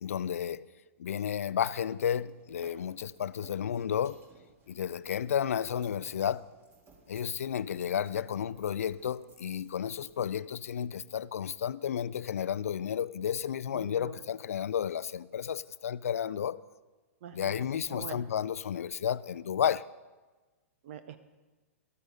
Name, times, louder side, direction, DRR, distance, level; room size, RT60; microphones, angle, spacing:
voice 1, 0.0-0.7 1.0-4.2 4.7-6.5 7.1-16.6 17.3-19.8, left 9 dB, 75° left, 0.4 m, -32 dB
sound 1, 1.6-11.6, right 3 dB, 30° right, 2.1 m, -61 dB
voice 2, 13.7-14.2 17.2-18.3 20.8-21.2, right 8 dB, 60° right, 0.8 m, -45 dB
13.5 x 12.5 x 4.0 m
hypercardioid pair, 110°, 8 cm